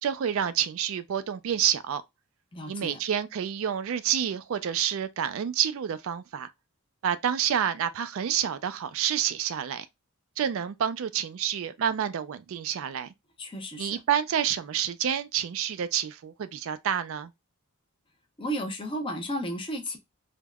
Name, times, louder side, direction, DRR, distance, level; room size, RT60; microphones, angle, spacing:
voice 1, 0.0-2.0 2.7-6.5 7.0-9.9 10.4-13.1 13.8-17.3, right 9 dB, 60° right, 0.3 m, -28 dB
voice 2, 2.5-3.0 13.4-14.0 18.4-20.0, equal, 25° left, 0.5 m, -33 dB
3.3 x 2.1 x 2.2 m
head